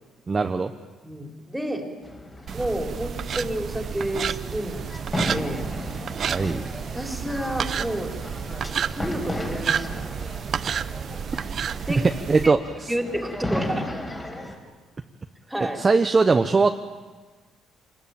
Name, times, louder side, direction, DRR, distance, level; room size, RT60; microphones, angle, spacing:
voice 1, 0.3-0.7 6.2-6.6 12.3-12.9 15.8-16.7, right 4 dB, 25° right, 6 dB, 1.0 m, -20 dB
voice 2, 1.0-1.9 2.5-5.7 6.9-8.1 8.9-10.0 11.9-12.1 12.4-12.5 12.9-13.9 15.5-15.8, right 1 dB, 5° right, 3 dB, 3.8 m, -30 dB
sound 1, 2.0-14.6, left 1 dB, 20° left, 4.7 m, -35 dB
sound 2, 2.5-12.5, right 7 dB, 50° right, 0.7 m, -31 dB
26.0 x 20.0 x 9.1 m, 1.4 s
cardioid pair, 115°, 0 cm